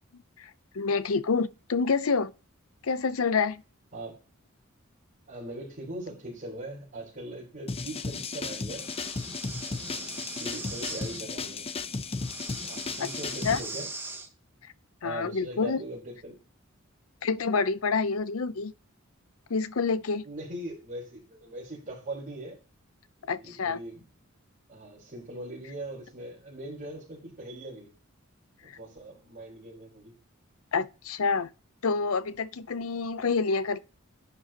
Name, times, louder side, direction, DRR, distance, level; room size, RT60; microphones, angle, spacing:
voice 1, 0.7-2.3 2.8-3.6 13.4-13.6 15.0-15.8 17.2-18.7 19.5-20.2 23.3-23.8 28.7-28.8 30.7-31.5 31.8-33.8, left 4 dB, 75° left, 0.6 m, -27 dB
voice 2, 5.3-8.9 9.6-11.7 12.7-13.9 15.0-16.4 20.2-22.6 23.2-24.0 24.7-27.9 28.8-30.1, right 1 dB, 40° right, 4.0 m, -41 dB
sound 1, 7.7-13.6, left 4 dB, 30° left, 0.6 m, -35 dB
Breathing, 8.8-11.2 12.2-14.3, right 3 dB, 10° right, 1.1 m, -41 dB
11.0 x 6.9 x 2.9 m
head